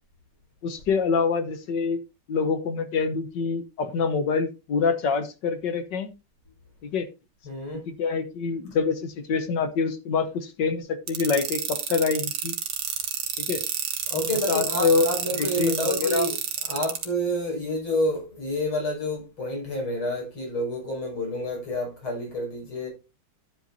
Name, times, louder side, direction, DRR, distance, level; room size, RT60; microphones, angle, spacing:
voice 1, 0.6-2.0 2.3-6.1 6.8-7.1 7.7-12.5 13.4-13.6 14.5-15.1 15.4-16.3, left 5 dB, 60° left, 1.6 m, -26 dB
voice 2, 7.4-7.8 14.1-16.4 16.6-22.9, equal, 80° left, 6.5 m, -29 dB
sound 1, 11.1-17.1, right 8 dB, 70° right, 2.0 m, -29 dB
12.0 x 7.9 x 2.7 m
omnidirectional pair, 2.3 m